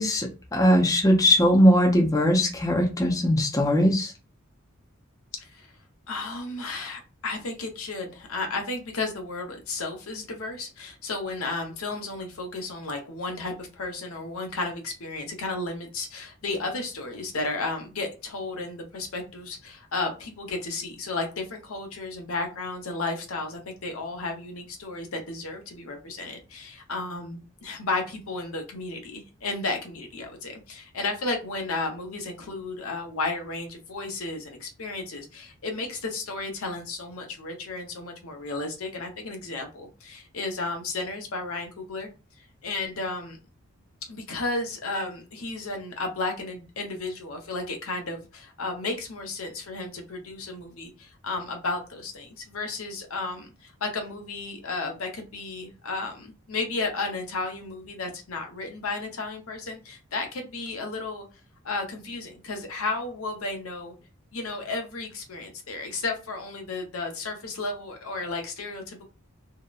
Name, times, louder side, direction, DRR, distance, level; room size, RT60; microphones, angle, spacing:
voice 1, 0.0-4.1, equal, 15° left, 1 dB, 0.4 m, -20 dB
voice 2, 5.3-5.7 6.1-42.1 42.4-43.4 44.1-61.2 61.6-63.9 64.3-69.0, left 3 dB, 90° left, 3 dB, 0.7 m, -33 dB
2.7 x 2.0 x 2.3 m, 0.31 s
head